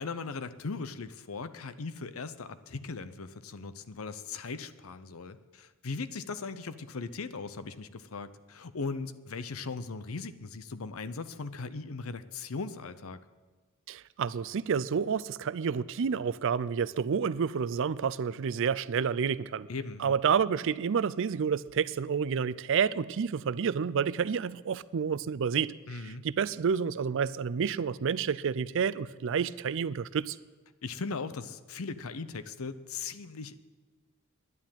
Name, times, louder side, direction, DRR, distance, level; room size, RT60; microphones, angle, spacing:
voice 1, 0.0-13.2 19.7-20.2 25.9-26.2 30.8-33.6, left 4 dB, 75° left, 0.7 m, -38 dB
voice 2, 13.9-19.7 20.0-30.4, right 6 dB, 65° right, 0.4 m, -29 dB
11.0 x 9.8 x 9.0 m
head